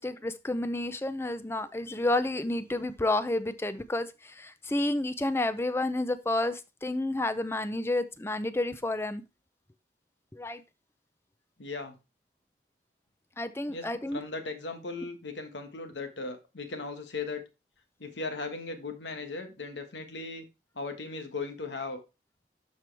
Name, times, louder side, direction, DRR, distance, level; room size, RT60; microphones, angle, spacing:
voice 1, 0.0-9.2 10.3-10.6 13.4-14.2, left 2 dB, 15° left, 13 dB, 0.5 m, -30 dB
voice 2, 11.6-11.9 13.7-13.9 14.1-17.4 18.0-20.5 20.7-22.0, left 3 dB, 90° left, 7 dB, 1.6 m, -37 dB
12.0 x 4.6 x 3.4 m, 0.27 s
head